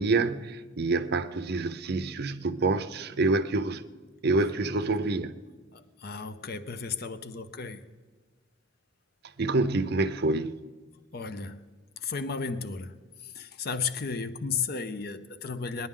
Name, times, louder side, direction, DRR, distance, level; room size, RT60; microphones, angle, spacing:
voice 1, 0.0-3.8 4.2-5.3 9.4-10.6, right 3 dB, 55° right, 0.6 m, -27 dB
voice 2, 5.7-7.8 11.1-11.7 12.0-13.0 13.2-15.9, left 5 dB, 55° left, 0.6 m, -34 dB
20.5 x 11.0 x 3.7 m
head